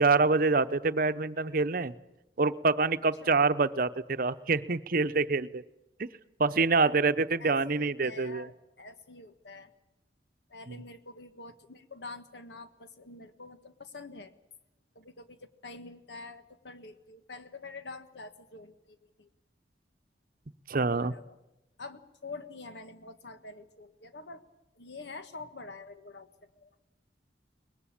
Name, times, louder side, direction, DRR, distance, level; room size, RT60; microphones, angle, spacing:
voice 1, 0.0-1.9 2.4-5.6 6.0-6.1 6.4-8.5 20.7-21.1, right 4 dB, 55° right, 12 dB, 0.8 m, -26 dB
voice 2, 7.4-9.7 10.5-14.3 15.0-19.3 20.9-21.4 21.8-24.4 24.8-26.3 26.6-26.7, left 3 dB, 75° left, 9 dB, 1.6 m, -46 dB
23.0 x 21.0 x 8.8 m, 0.90 s
head